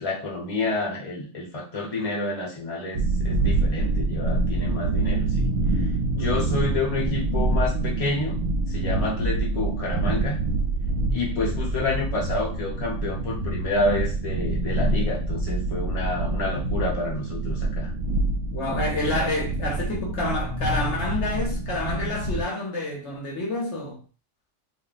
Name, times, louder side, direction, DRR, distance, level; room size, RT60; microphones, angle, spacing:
voice 1, 0.0-5.9 6.1-10.4 11.1-17.9, left 2 dB, 30° left, 0.9 m, -29 dB
sound 1, 2.9-22.4, right 2 dB, 70° right, 1.0 m, -26 dB
voice 2, 6.1-6.6 18.5-24.0, left 2 dB, 60° left, 1.1 m, -28 dB
2.6 x 2.1 x 4.0 m
omnidirectional pair, 1.4 m